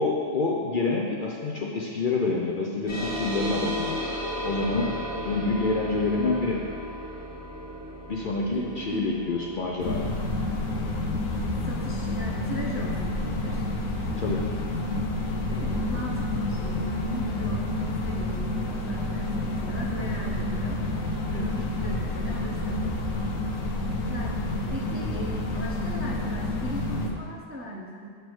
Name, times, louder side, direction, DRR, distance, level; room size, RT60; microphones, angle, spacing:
voice 1, 0.0-4.0 4.4-5.0 5.2-6.6 8.1-10.1 14.2-14.4 21.3-21.5, left 3 dB, 55° left, -2 dB, 0.6 m, -27 dB
sound 1, 2.9-13.8, equal, 20° left, 1.8 m, -35 dB
voice 2, 8.5-9.1 11.1-13.6 15.5-20.8 21.5-22.8 23.2-23.3 23.8-24.4 24.7-28.1, equal, 20° right, -4 dB, 0.4 m, -38 dB
sound 2, 9.8-27.1, left 2 dB, 85° left, 1.2 m, -29 dB
7.8 x 3.4 x 6.0 m, 2.2 s
omnidirectional pair, 1.4 m